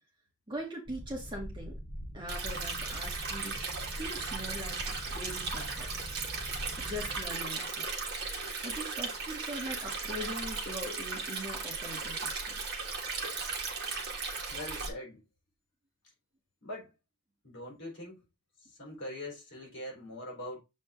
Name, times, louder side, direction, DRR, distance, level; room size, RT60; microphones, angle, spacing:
voice 1, 0.5-1.8 2.1-3.7 4.0-5.9 6.8-7.9 8.6-12.5, equal, 20° right, 2.0 m, -41 dB
sound 1, 0.9-7.2, equal, 20° left, 4.4 m, -43 dB
Stream, 2.3-14.9, right 4 dB, 50° right, 1.8 m, -37 dB
voice 2, 14.5-15.3 16.6-16.9 17.4-18.2 18.6-20.6, left 1 dB, 55° left, 4.0 m, -42 dB
7.4 x 4.2 x 3.6 m
head